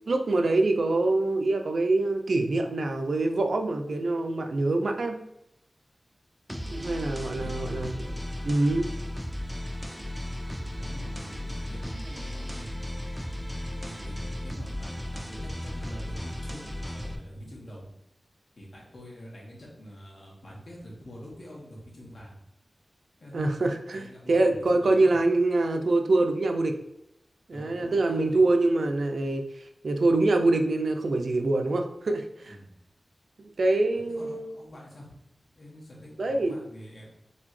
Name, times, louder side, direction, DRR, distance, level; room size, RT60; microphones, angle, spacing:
voice 1, 0.1-5.2 6.7-7.9 8.4-8.9 23.3-26.7 27.5-32.6 33.4-34.5 36.2-36.5, right 2 dB, 80° right, 5 dB, 0.4 m, -25 dB
sound 1, 6.5-17.2, left 1 dB, 5° right, 0.6 m, -35 dB
voice 2, 7.2-7.8 10.7-12.7 13.3-16.6 16.9-17.8 18.6-22.4 23.2-23.6 23.9-25.2 27.5-28.4 32.5-32.7 33.9-35.1 35.6-37.1, equal, 70° left, -4 dB, 1.7 m, -45 dB
4.0 x 3.6 x 3.1 m, 0.81 s
wide cardioid pair, 55°, 0 cm